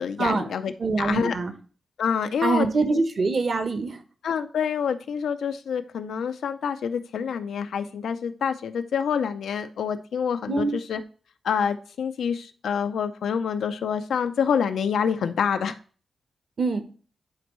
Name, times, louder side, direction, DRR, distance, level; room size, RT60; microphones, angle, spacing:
voice 1, 0.0-0.7 1.0-1.4 2.0-3.0 4.2-11.0 11.4-15.8, left 7 dB, 90° left, 8 dB, 0.6 m, -27 dB
voice 2, 0.8-1.5 2.4-4.0 10.5-10.7 16.6-16.8, right 3 dB, 45° right, 8 dB, 1.0 m, -24 dB
10.5 x 4.5 x 3.1 m, 0.40 s
wide cardioid pair, 125°, 0 cm